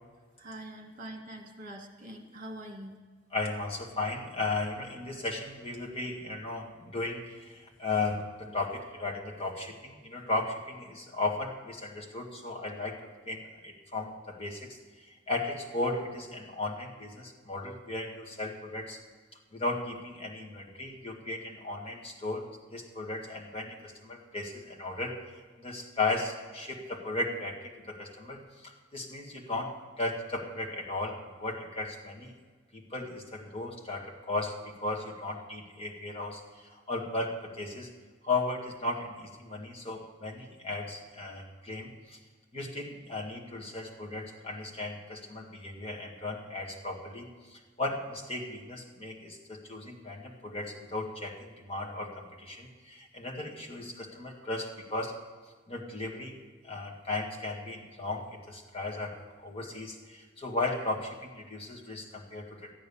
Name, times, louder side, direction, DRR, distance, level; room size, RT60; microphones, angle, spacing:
voice 1, 0.4-3.0, right 1 dB, 40° right, 4 dB, 1.7 m, -44 dB
voice 2, 3.3-13.0 13.3-19.0 19.5-22.5 22.7-32.3 32.7-37.9 38.2-42.2 42.5-55.2 55.7-56.4 56.6-62.7, left 2 dB, 30° left, -1 dB, 1.9 m, -36 dB
13.5 x 9.3 x 6.9 m, 1.5 s
head